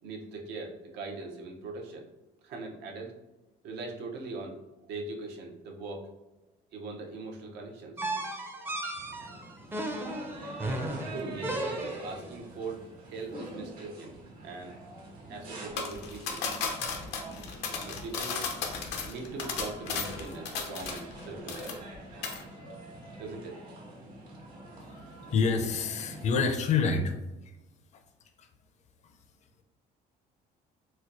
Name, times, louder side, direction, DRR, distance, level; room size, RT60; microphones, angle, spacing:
voice 1, 0.0-2.1 2.4-3.2 3.6-4.6 4.9-6.1 6.7-8.1 8.4-8.8 10.2-14.1 14.4-14.8 15.3-16.5 17.8-18.4 19.1-21.9 23.2-23.7, right 3 dB, 80° right, 1 dB, 0.7 m, -41 dB
sound 1, 8.0-12.3, right 1 dB, 15° right, 0.4 m, -35 dB
sound 2, 8.9-26.3, right 1 dB, 60° right, 1.3 m, -45 dB
sound 3, 15.8-21.2 21.5-22.0 22.2-22.4, left 5 dB, 90° left, 0.6 m, -35 dB
voice 2, 25.3-27.1 28.4-28.5, left 5 dB, 45° left, 6 dB, 0.5 m, -27 dB
4.2 x 2.2 x 2.5 m, 1.0 s
cardioid pair, 110°, 17 cm